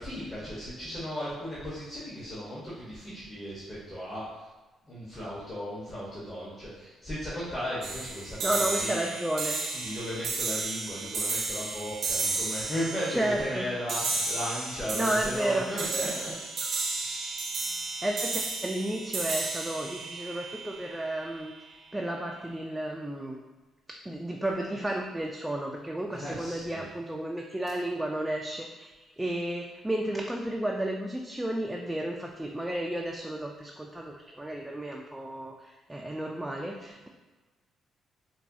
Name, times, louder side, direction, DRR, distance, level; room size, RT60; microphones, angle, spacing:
voice 1, 0.0-4.5 4.9-9.0 9.7-16.3 16.9-17.2 26.1-26.9, equal, 30° left, -8 dB, 1.0 m, -36 dB
sound 1, 7.8-21.3, right 3 dB, 60° right, 0.6 m, -33 dB
voice 2, 8.4-9.6 13.1-13.7 14.9-15.8 18.0-23.4 23.9-37.1, right 1 dB, 10° right, 0 dB, 0.3 m, -32 dB
4.1 x 2.2 x 2.6 m, 1.2 s
cardioid pair, 90°, 0 cm